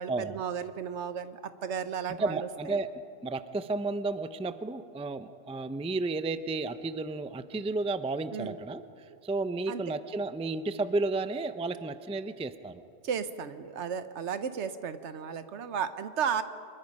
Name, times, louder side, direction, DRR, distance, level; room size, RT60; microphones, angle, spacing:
voice 1, 0.0-2.7 8.3-8.6 9.7-9.9 13.0-16.4, right 7 dB, 75° right, 12 dB, 1.2 m, -34 dB
voice 2, 2.2-2.9 3.2-8.8 9.2-12.8, right 3 dB, 10° right, 12 dB, 0.3 m, -32 dB
25.0 x 21.5 x 5.4 m, 2.6 s
omnidirectional pair, 1.2 m